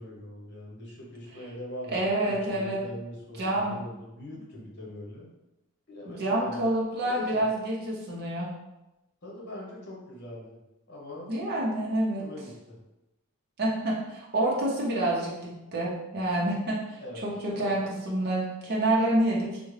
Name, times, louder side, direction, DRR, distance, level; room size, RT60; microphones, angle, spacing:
voice 1, 0.0-5.3 5.9-6.7 7.0-7.4 9.2-10.6 10.9-11.4 12.2-12.8 17.0-17.3 17.5-17.7, left 1 dB, 50° left, -3 dB, 1.0 m, -42 dB
voice 2, 1.9-2.8 3.4-3.8 6.2-8.5 11.3-12.2 13.6-19.6, right 1 dB, 50° right, -4 dB, 0.7 m, -28 dB
3.5 x 2.1 x 3.2 m, 0.95 s
head